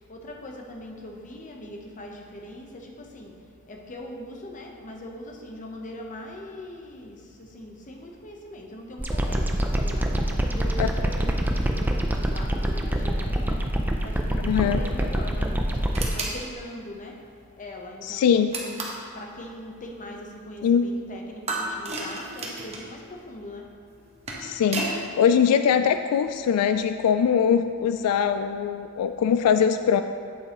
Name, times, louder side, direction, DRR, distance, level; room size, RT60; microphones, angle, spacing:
voice 1, 0.1-3.3 3.7-10.1 10.5-13.6 13.9-17.1 17.6-18.8 19.1-23.6, left 1 dB, 35° left, 1 dB, 0.8 m, -41 dB
sound 1, 9.0-16.1, right 1 dB, 10° right, 0.4 m, -25 dB
voice 2, 14.4-14.8 18.0-18.5 20.6-20.9 24.4-30.0, left 7 dB, 85° left, 12 dB, 0.3 m, -22 dB
sound 2, 15.9-16.4 18.5-19.1 21.5-22.9 24.0-25.0, right 2 dB, 30° right, 1.0 m, -32 dB
8.3 x 7.6 x 2.9 m, 2.2 s
head